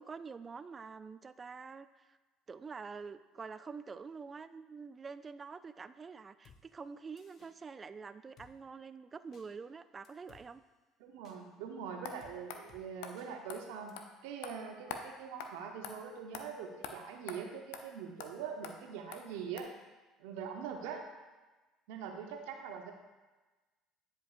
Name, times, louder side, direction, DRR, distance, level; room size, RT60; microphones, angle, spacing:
voice 1, 0.0-2.2 2.5-10.6, right 5 dB, 30° right, 13 dB, 0.3 m, -47 dB
Drum kit, 6.4-6.6 7.2-7.5 8.4-8.5 9.3-9.5 10.0-10.4 11.2-11.4 12.2-12.4 12.7-12.8 13.2-13.3 13.9-14.0, left 6 dB, 55° left, 0.8 m, -60 dB
voice 2, 11.0-14.0 14.2-19.7 20.2-21.0 21.9-22.9, right 6 dB, 75° right, 3 dB, 0.8 m, -43 dB
sound 1, 12.0-12.2 12.5-12.6 13.0-13.1 13.5-13.6 14.0-14.1 14.4-14.5 14.9-15.0 15.4-15.5 15.8-15.9 16.3-16.4 16.8-16.9 17.3-17.4 17.7-17.8 18.2-18.3 18.6-18.7 19.1-19.2 19.6-19.7, left 7 dB, 75° left, 0.5 m, -43 dB
9.6 x 5.1 x 2.5 m, 1.2 s
hypercardioid pair, 65°, 0 cm